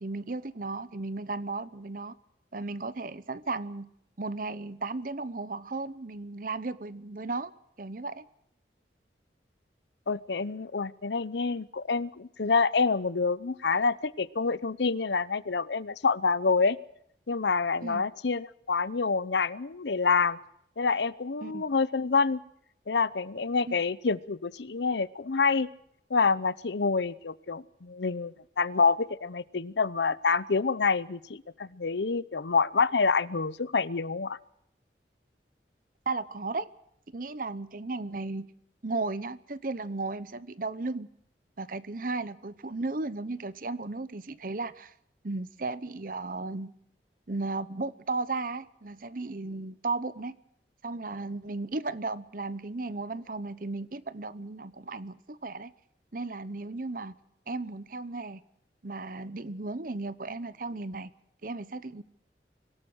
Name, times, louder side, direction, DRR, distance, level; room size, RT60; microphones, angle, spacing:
voice 1, 0.0-2.1 2.5-3.9 4.2-7.5 7.8-8.3 17.8-18.1 21.4-21.6 23.6-23.7 36.1-36.7 37.1-38.5 38.8-41.1 41.6-44.9 45.2-46.7 47.3-50.4 50.8-55.7 56.1-57.1 57.5-58.4 58.8-61.1 61.4-62.0, right 3 dB, 50° right, 16 dB, 0.9 m, -35 dB
voice 2, 10.1-16.8 17.3-20.4 20.8-22.4 22.9-25.7 26.1-34.4, left 4 dB, 75° left, 18 dB, 0.7 m, -27 dB
25.0 x 17.5 x 6.3 m, 0.72 s
head